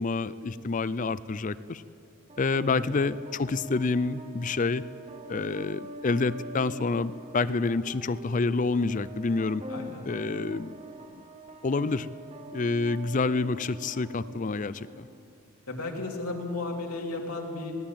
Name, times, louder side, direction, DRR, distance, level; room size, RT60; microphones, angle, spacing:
voice 1, 0.0-1.8 2.4-4.8 5.3-9.6 10.1-10.8 11.6-12.1 12.5-15.1, left 3 dB, 35° left, 16 dB, 0.4 m, -28 dB
sound 1, 2.3-15.3, right 1 dB, 25° right, 0.9 m, -44 dB
voice 2, 9.7-10.1 15.7-17.8, left 2 dB, 85° left, 0 dB, 3.0 m, -34 dB
19.0 x 18.0 x 8.8 m, 2.4 s
head